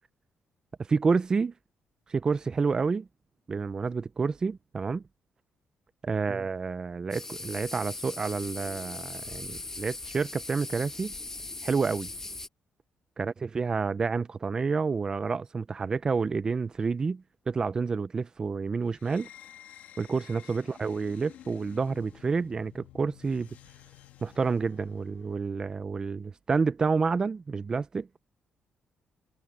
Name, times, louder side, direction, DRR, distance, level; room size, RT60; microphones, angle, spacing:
voice 1, 0.9-1.5 2.1-3.1 3.5-5.0 6.0-11.1 11.6-12.1 13.2-19.3 20.0-23.5 24.2-28.1, right 4 dB, 30° right, 0.5 m, -29 dB
sound 1, 7.1-12.5, left 2 dB, 20° left, 1.7 m, -40 dB
sound 2, 18.9-25.5, left 12 dB, 85° left, 2.6 m, -52 dB
cardioid pair, 125°, 3 cm